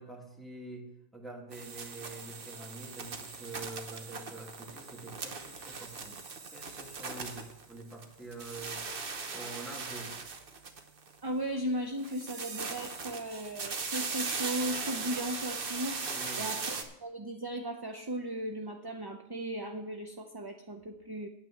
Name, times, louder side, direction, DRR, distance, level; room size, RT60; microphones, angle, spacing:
voice 1, 0.0-6.2 6.5-10.1 16.1-16.5, right 2 dB, ahead, -1 dB, 1.9 m, -46 dB
sound 1, 1.5-8.1 8.3-11.1 12.0-16.8, right 4 dB, 60° right, 1.2 m, -39 dB
voice 2, 11.2-21.3, right 1 dB, 30° right, 5 dB, 0.6 m, -37 dB
9.2 x 8.9 x 5.9 m, 0.87 s
omnidirectional pair, 1.1 m